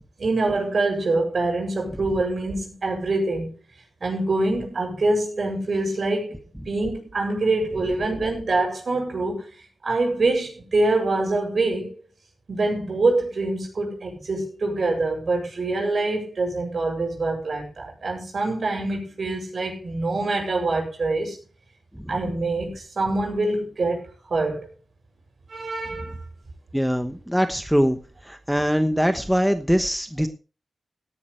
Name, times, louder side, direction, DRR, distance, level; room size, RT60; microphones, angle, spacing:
voice 1, 0.2-3.5 4.0-6.3 6.7-9.5 9.8-12.0 12.5-21.4 22.1-24.7 25.5-26.1, right 2 dB, 60° right, 7.7 m, -25 dB
voice 2, 26.7-28.0 28.2-30.3, equal, ahead, 1.1 m, -22 dB
17.0 x 11.0 x 3.4 m
wide cardioid pair, 80°, 0 cm